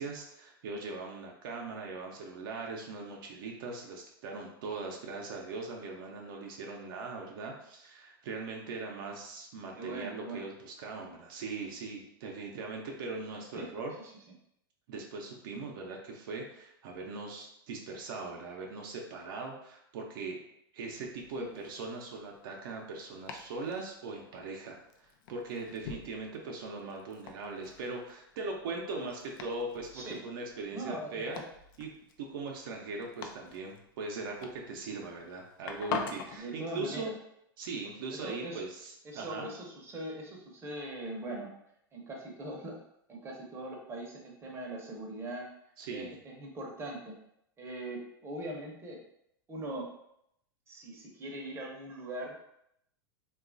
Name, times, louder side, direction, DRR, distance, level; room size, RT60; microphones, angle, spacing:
voice 1, 0.0-13.9 14.9-20.4 20.7-31.4 31.8-31.9 32.2-37.1 37.6-39.5 45.8-46.2, right 3 dB, 65° right, 0 dB, 0.6 m, -40 dB
voice 2, 9.7-10.4 13.5-13.7 14.0-14.1 21.4-21.5 29.9-30.2 30.7-31.4 36.4-37.1 38.1-38.6 39.0-41.5 41.9-42.8 43.1-45.5 45.9-47.1 47.6-49.0 49.5-49.9 50.7-52.3, right 1 dB, 20° right, -1 dB, 0.7 m, -41 dB
Domestic sounds home sounds, 20.8-36.4, left 6 dB, 60° left, 0.4 m, -46 dB
2.9 x 2.3 x 2.5 m, 0.76 s
hypercardioid pair, 110°, 12 cm